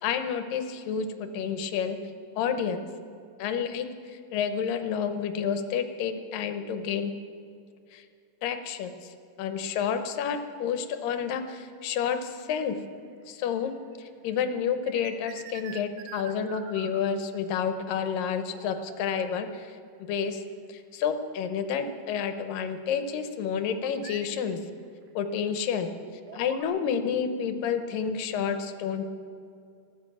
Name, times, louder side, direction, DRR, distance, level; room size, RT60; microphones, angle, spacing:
voice 1, 0.0-2.0 2.4-2.8 3.4-7.1 7.9-8.0 8.4-12.8 13.3-13.7 14.0-19.8 20.1-20.4 20.7-24.6 25.2-25.9 26.3-29.1, left 7 dB, 85° left, 8 dB, 2.6 m, -30 dB
sound 1, 11.5-11.7 12.4-14.0 14.2-17.3 17.8-18.2 18.4-19.7 20.5-20.6 21.0-21.1 21.7-21.8 23.4-26.6, right 9 dB, 80° right, 2.5 m, -46 dB
14.5 x 12.0 x 7.3 m, 2.4 s
omnidirectional pair, 3.9 m